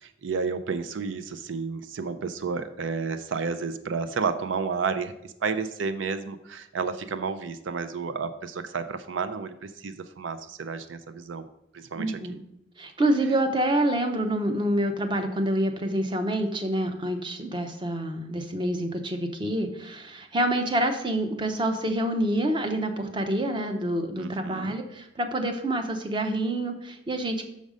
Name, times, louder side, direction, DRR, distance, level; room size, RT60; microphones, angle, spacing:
voice 1, 0.0-11.5 11.7-12.2 24.2-24.8, right 5 dB, 80° right, 11 dB, 0.4 m, -31 dB
voice 2, 12.0-12.4 12.8-27.4, right 1 dB, 25° right, 6 dB, 0.7 m, -27 dB
6.3 x 5.2 x 5.0 m, 0.82 s
head